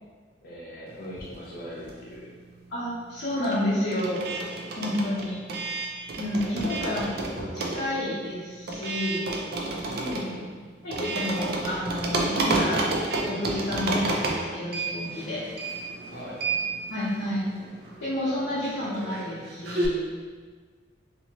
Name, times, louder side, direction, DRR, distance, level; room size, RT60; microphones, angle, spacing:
voice 1, 0.4-2.3 6.6-6.8 9.8-10.5 16.1-16.4, left 1 dB, 50° left, -7 dB, 0.9 m, -39 dB
sound 1, 1.0-2.3 2.6-19.9, right 2 dB, 55° right, 0.4 m, -31 dB
voice 2, 2.7-4.2 4.8-5.4 6.2-9.2 10.8-12.9 13.3-15.4 16.9-17.5 18.0-20.0, left 1 dB, 80° left, -12 dB, 0.9 m, -30 dB
2.8 x 2.7 x 2.8 m, 1.5 s
head